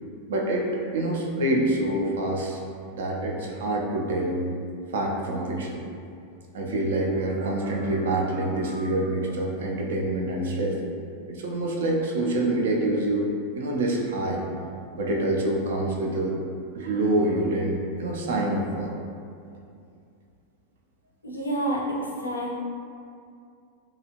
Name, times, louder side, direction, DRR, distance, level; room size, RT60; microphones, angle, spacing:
voice 1, 0.3-2.6 2.9-4.4 4.9-5.8 6.5-10.8 11.3-13.3 13.5-14.4 15.0-16.4 16.7-18.9, right 1 dB, 60° right, -1 dB, 0.4 m, -26 dB
voice 2, 21.2-22.5, right 1 dB, 80° left, -3 dB, 0.4 m, -28 dB
2.7 x 2.3 x 2.8 m, 2.4 s
figure-of-eight pair, 90°, 0 cm